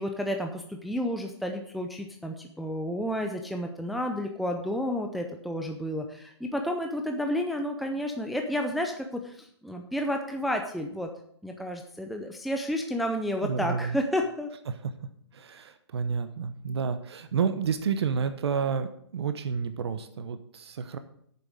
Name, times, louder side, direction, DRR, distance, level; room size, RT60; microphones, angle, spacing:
voice 1, 0.0-11.1 11.4-14.5, equal, ahead, 3 dB, 0.5 m, -31 dB
voice 2, 13.4-14.0 14.7-14.9 15.3-21.0, right 6 dB, 65° right, 10 dB, 1.0 m, -30 dB
8.9 x 7.0 x 6.3 m, 0.68 s
hypercardioid pair, 145°, 15 cm